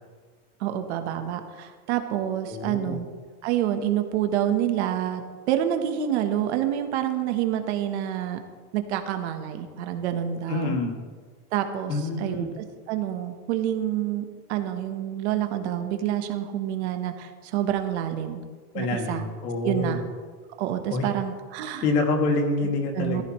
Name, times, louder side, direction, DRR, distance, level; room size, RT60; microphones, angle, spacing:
voice 1, 0.6-3.1 3.4-5.2 5.5-8.4 8.7-10.8 11.5-18.4 18.7-19.2 19.6-20.0 20.6-21.8 22.6-23.2, right 10 dB, 45° right, 7 dB, 1.1 m, -28 dB
voice 2, 2.5-3.0 10.5-10.9 11.9-12.5 18.7-20.0 20.9-21.1 21.8-23.2, left 3 dB, 85° left, 3 dB, 2.5 m, -26 dB
15.0 x 13.5 x 3.1 m, 1.5 s
supercardioid pair, 180°, 46 cm